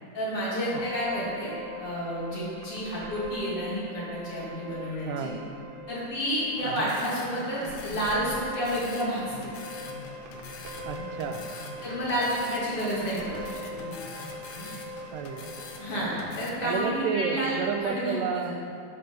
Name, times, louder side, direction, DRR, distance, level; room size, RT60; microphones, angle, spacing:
voice 1, 0.1-1.5 1.8-5.3 5.9-9.2 11.8-13.4 15.8-17.5 17.8-18.5, equal, 45° left, -8 dB, 3.1 m, -30 dB
sound 1, 0.7-17.8, equal, 70° right, 1.6 m, -42 dB
voice 2, 5.0-5.4 6.6-6.9 10.9-11.5 15.1-16.0 16.6-18.5, right 6 dB, 85° right, 6 dB, 2.2 m, -31 dB
sound 2, 6.6-16.5, left 3 dB, 75° left, 2.3 m, -43 dB
11.0 x 5.8 x 5.3 m, 2.5 s
omnidirectional pair, 3.7 m